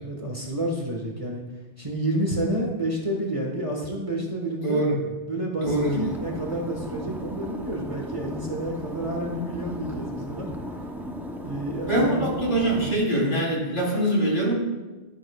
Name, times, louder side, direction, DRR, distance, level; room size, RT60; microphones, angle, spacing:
voice 1, 0.0-1.4 1.8-4.8 5.3-10.5 11.4-12.4, right 1 dB, 30° right, -1 dB, 1.3 m, -29 dB
voice 2, 4.6-5.0 5.6-6.0 11.9-14.5, right 1 dB, 50° left, -5 dB, 3.5 m, -23 dB
sound 1, 5.6-12.9, equal, ahead, 0.6 m, -36 dB
12.5 x 8.8 x 2.3 m, 1.2 s
omnidirectional pair, 1.1 m